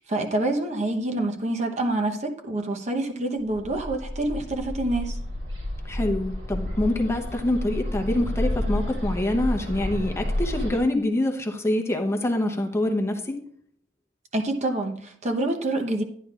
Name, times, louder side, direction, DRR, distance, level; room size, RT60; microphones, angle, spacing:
voice 1, 0.1-5.2 14.3-16.0, right 2 dB, 40° right, 1.0 m, -27 dB
Bird, 3.5-10.8, left 1 dB, 85° right, 2.9 m, -30 dB
voice 2, 5.8-13.4, left 1 dB, 15° left, 0.8 m, -25 dB
11.5 x 10.0 x 2.4 m
head